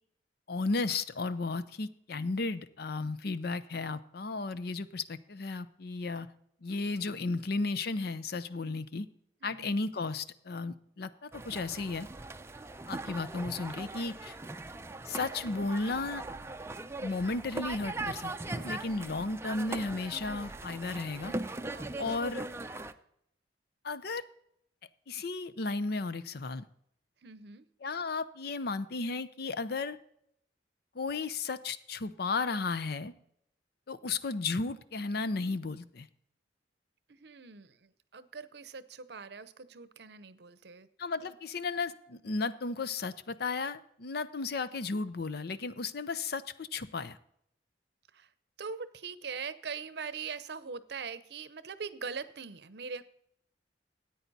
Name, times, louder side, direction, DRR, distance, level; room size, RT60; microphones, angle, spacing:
voice 1, 0.5-6.3 6.6-9.1 9.4-12.1 12.9-14.3 15.1-16.2 17.0-21.3 22.0-22.4 23.8-24.2 25.1-26.6 27.8-30.0 30.9-33.1 33.9-36.1 41.0-47.2, left 3 dB, 60° left, 14 dB, 0.6 m, -34 dB
voice 2, 6.9-7.5 9.4-9.8 19.0-19.3 21.7-22.1 27.2-27.7 37.1-40.9 41.2-41.4 48.1-48.3 48.6-53.0, right 5 dB, 65° right, 14 dB, 0.7 m, -42 dB
sound 1, 11.3-22.9, right 2 dB, 15° right, 0.5 m, -40 dB
13.5 x 9.2 x 4.1 m, 0.72 s
head